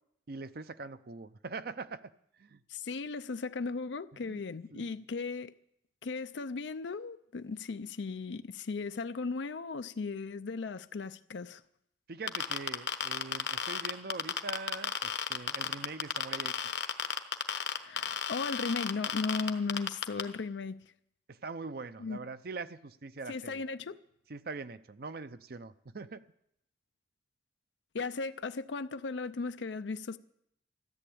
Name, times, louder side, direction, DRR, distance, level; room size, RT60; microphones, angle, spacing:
voice 1, 0.3-2.1 2.4-2.6 4.2-4.4 4.7-4.9 12.1-16.6 21.3-23.6 24.3-26.2, right 3 dB, 60° right, 0.6 m, -42 dB
voice 2, 2.7-5.6 6.0-11.6 17.8-20.8 22.0-22.2 23.3-24.0 27.9-30.2, left 4 dB, 90° left, 0.5 m, -36 dB
sound 1, 12.3-20.2, left 7 dB, 70° left, 1.0 m, -32 dB
13.5 x 11.5 x 8.6 m
head